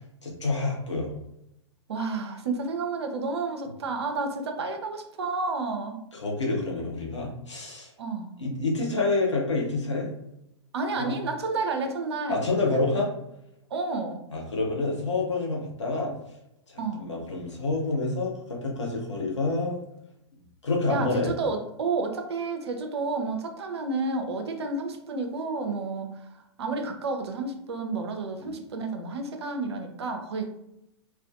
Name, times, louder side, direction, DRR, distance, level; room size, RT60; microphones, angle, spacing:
voice 1, 0.2-1.1 6.1-7.9 8.4-10.1 11.0-11.2 12.3-13.1 14.3-16.1 16.7-19.8 20.6-21.3, left 3 dB, 75° left, -2 dB, 0.8 m, -28 dB
voice 2, 1.9-6.0 8.0-8.4 10.7-12.5 13.7-14.2 16.8-17.0 20.9-30.5, right 3 dB, 60° right, 5 dB, 0.5 m, -31 dB
2.4 x 2.2 x 2.5 m, 0.82 s
figure-of-eight pair, 105°, 15 cm